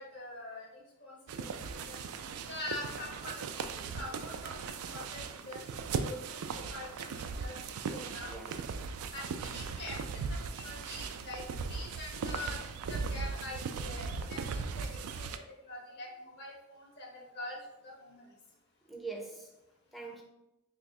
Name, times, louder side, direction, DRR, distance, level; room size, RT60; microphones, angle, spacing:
voice 1, 0.0-1.5 1.8-2.0 2.5-3.7 3.9-5.6 6.0-8.3 9.1-15.3 15.6-18.3, left 1 dB, 50° left, -1 dB, 0.7 m, -44 dB
sound 1, 1.3-15.4, right 5 dB, 80° right, 0.3 m, -38 dB
voice 2, 8.0-8.6 18.9-19.6 19.9-20.2, right 4 dB, ahead, 0 dB, 0.4 m, -44 dB
3.1 x 2.4 x 4.2 m, 0.90 s
head